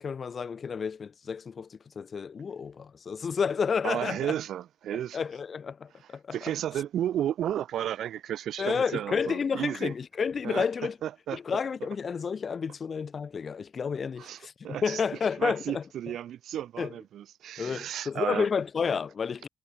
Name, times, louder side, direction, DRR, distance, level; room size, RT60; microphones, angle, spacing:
voice 1, 0.0-4.3 5.1-6.3 8.6-11.0 11.3-15.8 16.8-16.9 17.6-19.5, left 6 dB, 45° left, 1.2 m, -31 dB
voice 2, 3.8-5.2 6.3-9.9 10.4-10.7 11.0-11.4 11.8-11.9 14.2-15.0 15.4-18.5, right 11 dB, 70° right, 0.8 m, -33 dB
cardioid pair, 90°, 0 cm